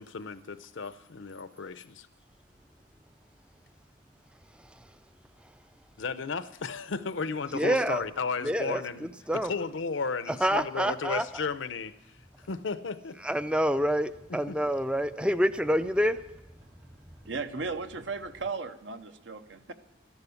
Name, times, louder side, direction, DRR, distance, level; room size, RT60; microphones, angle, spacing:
voice 1, 0.0-2.1 6.0-9.1 9.4-12.2 12.5-13.2 14.3-14.6, left 4 dB, 70° left, 0.7 m, -34 dB
voice 2, 7.5-8.0 8.4-9.5 10.3-11.3 13.2-16.2, equal, 5° right, 0.4 m, -27 dB
voice 3, 17.2-19.7, right 4 dB, 65° right, 0.9 m, -36 dB
13.5 x 10.5 x 7.1 m
head